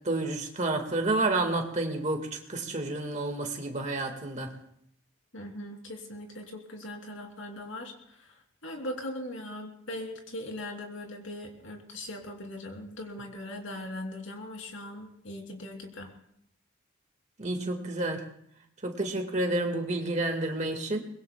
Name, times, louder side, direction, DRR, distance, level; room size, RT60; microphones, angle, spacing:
voice 1, 0.1-4.5 17.4-18.2 18.8-21.0, right 2 dB, 35° right, 4 dB, 1.8 m, -30 dB
voice 2, 5.3-7.9 8.2-8.3 8.6-16.1, left 1 dB, 70° left, 2 dB, 3.0 m, -40 dB
24.0 x 21.0 x 2.3 m, 0.70 s
head